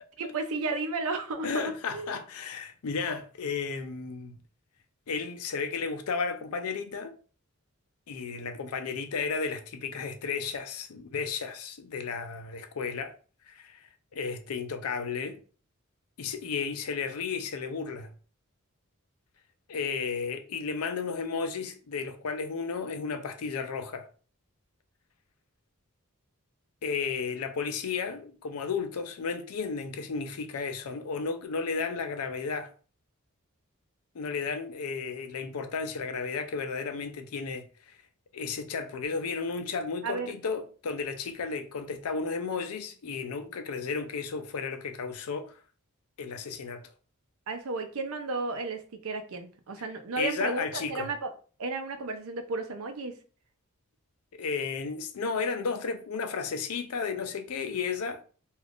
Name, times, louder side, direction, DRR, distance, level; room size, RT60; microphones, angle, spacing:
voice 1, 0.2-2.1 40.0-40.3 47.5-51.3 51.6-53.2, right 3 dB, 75° right, 0.5 m, -33 dB
voice 2, 1.4-4.4 5.1-7.1 8.1-13.1 13.5-15.4 16.2-18.1 19.7-24.1 26.8-32.7 34.1-38.0 38.3-45.5 46.2-46.8 50.2-51.1 54.3-58.2, left 5 dB, 90° left, 0.5 m, -33 dB
2.4 x 2.4 x 3.4 m
head